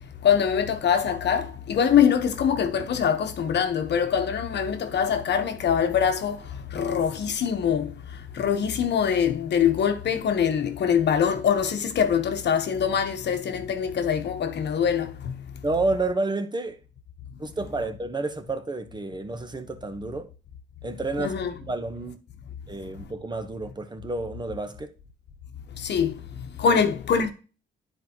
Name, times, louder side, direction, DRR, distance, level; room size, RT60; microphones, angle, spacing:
voice 1, 0.2-6.4 6.7-7.9 8.4-15.3 21.2-21.5 25.8-26.1 26.6-27.3, left 7 dB, 60° left, 1.1 m, -23 dB
voice 2, 15.6-16.8 17.4-20.3 20.8-22.2 22.7-24.9 26.7-26.8, right 2 dB, 20° right, 1.0 m, -30 dB
10.0 x 4.5 x 3.0 m
cardioid pair, 90°, 20 cm